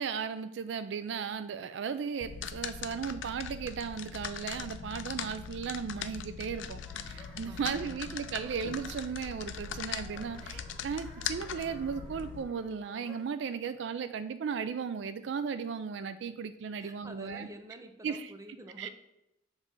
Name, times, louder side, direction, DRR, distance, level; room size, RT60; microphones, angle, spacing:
voice 1, 0.0-17.5 18.0-18.3 18.8-18.9, right 6 dB, 65° right, 12 dB, 0.3 m, -36 dB
sound 1, 2.2-12.4, left 7 dB, 75° left, 0.4 m, -40 dB
sound 2, 6.8-13.4, left 1 dB, ahead, 1.1 m, -55 dB
voice 2, 7.5-8.1 16.8-18.9, right 1 dB, 15° right, 6 dB, 0.6 m, -49 dB
7.3 x 3.2 x 5.3 m, 0.83 s
head